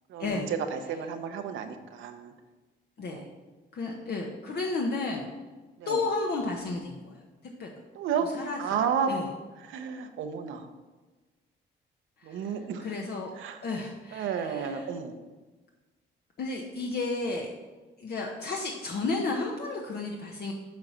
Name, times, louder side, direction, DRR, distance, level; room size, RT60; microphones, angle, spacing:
voice 1, 0.1-2.3 3.1-3.3 5.8-6.0 7.9-8.3 8.6-9.1 9.6-10.7 12.2-12.9 13.3-13.6 14.1-15.1, right 7 dB, 85° right, 7 dB, 0.8 m, -32 dB
voice 2, 3.7-5.3 5.8-7.2 7.6-7.7 8.2-8.6 9.1-9.3 12.2-12.5 12.8-13.3 13.6-14.9 16.4-17.5 18.0-20.5, left 3 dB, 55° left, 0 dB, 1.0 m, -32 dB
7.4 x 4.3 x 6.0 m, 1.2 s
cardioid pair, 90°, 20 cm